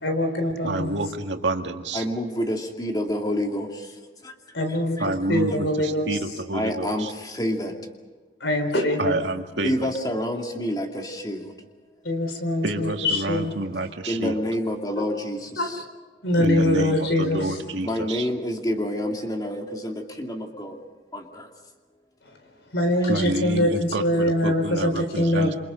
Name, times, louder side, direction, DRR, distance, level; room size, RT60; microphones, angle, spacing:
voice 1, 0.0-0.9 4.5-6.1 8.4-9.2 12.0-13.5 15.6-15.7 16.2-17.6 22.7-23.7 24.0-25.6, left 1 dB, 80° left, 6 dB, 4.3 m, -23 dB
voice 2, 0.6-2.0 5.0-7.1 9.0-9.9 12.6-14.4 16.4-18.3 23.1-25.5, right 2 dB, 85° right, 5 dB, 2.0 m, -28 dB
voice 3, 1.9-3.9 4.2-4.3 5.0-5.1 5.3-5.6 6.5-7.8 9.6-11.5 14.1-15.8 17.8-20.8 21.1-21.5, equal, 20° left, 2 dB, 2.5 m, -28 dB
27.5 x 27.0 x 5.1 m, 1.3 s
head